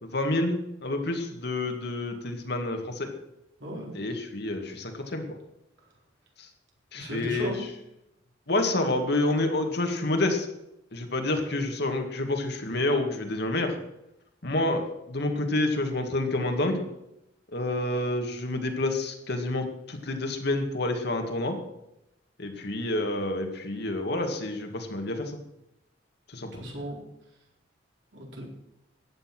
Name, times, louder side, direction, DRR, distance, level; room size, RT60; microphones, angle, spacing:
voice 1, 0.0-3.1 3.9-5.2 6.4-6.5 6.9-7.7 8.5-10.5 10.9-13.7 14.4-16.8 17.5-21.6 22.4-25.4 26.3-26.6, left 2 dB, 60° left, 4 dB, 2.1 m, -28 dB
voice 2, 3.6-3.9 6.9-7.6 26.5-27.0 28.1-28.5, right 1 dB, 70° right, -1 dB, 4.4 m, -35 dB
14.5 x 9.7 x 6.2 m, 0.86 s
head